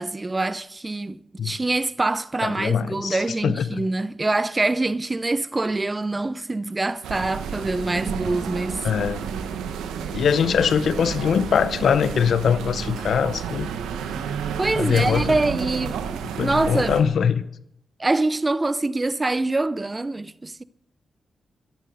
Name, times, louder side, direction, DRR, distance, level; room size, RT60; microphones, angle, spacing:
voice 1, 0.0-8.9 14.6-16.0 16.4-17.0 18.0-20.6, right 2 dB, 30° right, 0.7 m, -25 dB
voice 2, 2.4-3.8 8.8-9.2 10.1-13.7 14.8-15.4 16.4-17.4, left 7 dB, 70° left, 0.7 m, -22 dB
sound 1, 7.0-17.0, right 7 dB, 85° right, 1.2 m, -31 dB
13.0 x 10.5 x 6.5 m
supercardioid pair, 40°, 0 cm